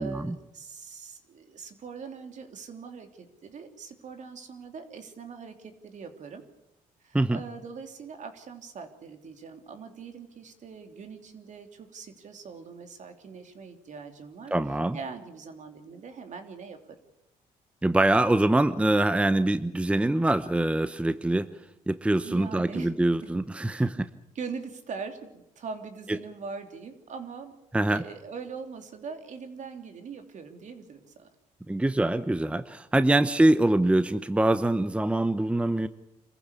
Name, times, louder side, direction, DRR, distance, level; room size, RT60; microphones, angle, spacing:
voice 1, 0.0-6.4 7.0-14.5 14.9-17.0 22.2-23.3 23.7-23.9 24.3-27.6 27.9-31.3, right 5 dB, 55° right, 6 dB, 3.3 m, -42 dB
voice 2, 14.5-15.0 17.8-21.5 21.9-24.1 27.7-28.0 31.7-35.9, right 1 dB, 10° right, 12 dB, 0.8 m, -24 dB
26.0 x 15.0 x 8.4 m, 0.86 s
cardioid pair, 90°, 15 cm